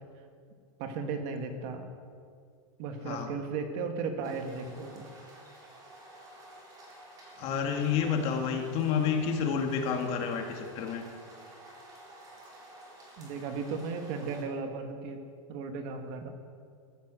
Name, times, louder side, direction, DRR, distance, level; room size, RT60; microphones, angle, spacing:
voice 1, 0.8-1.9 2.8-5.1 13.2-15.2 15.5-16.3, right 4 dB, 45° right, 6 dB, 1.8 m, -35 dB
sound 1, 4.2-14.4, right 1 dB, 20° right, 3.6 m, -51 dB
voice 2, 7.4-11.0, left 6 dB, 35° left, 4 dB, 1.9 m, -29 dB
14.5 x 14.5 x 6.3 m, 2.2 s
supercardioid pair, 150°, 16 cm